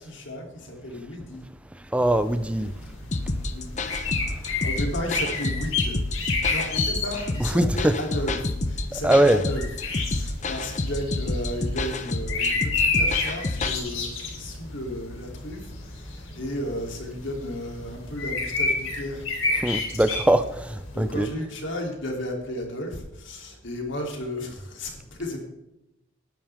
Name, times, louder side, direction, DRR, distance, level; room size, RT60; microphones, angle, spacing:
voice 1, 0.0-1.4 2.6-2.7 3.4-3.7 4.3-6.0 6.5-9.6 10.0-19.6 20.9-25.4, equal, 65° left, 1 dB, 3.2 m, -34 dB
voice 2, 1.7-2.7 4.2-4.4 7.4-8.0 8.9-9.4 19.6-21.3, right 1 dB, 5° right, 11 dB, 0.5 m, -22 dB
sound 1, 2.0-21.3, left 3 dB, 85° left, 3.5 m, -31 dB
sound 2, 3.1-13.8, left 2 dB, 35° left, 0.8 m, -29 dB
18.5 x 10.5 x 3.6 m, 0.88 s
head